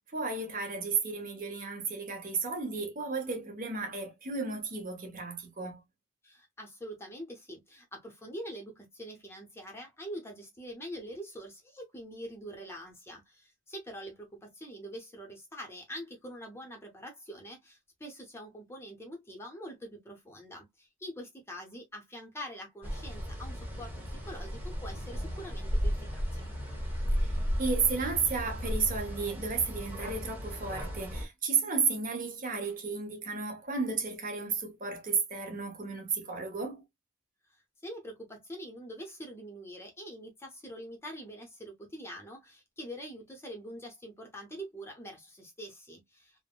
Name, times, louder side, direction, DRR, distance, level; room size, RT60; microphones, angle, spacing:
voice 1, 0.1-5.8 27.2-36.8, right 5 dB, 40° right, 0.9 m, -33 dB
voice 2, 6.2-26.5 37.5-46.4, equal, 10° left, 0.6 m, -44 dB
sound 1, 22.8-31.3, equal, 10° right, 1.0 m, -34 dB
3.5 x 2.0 x 2.2 m
head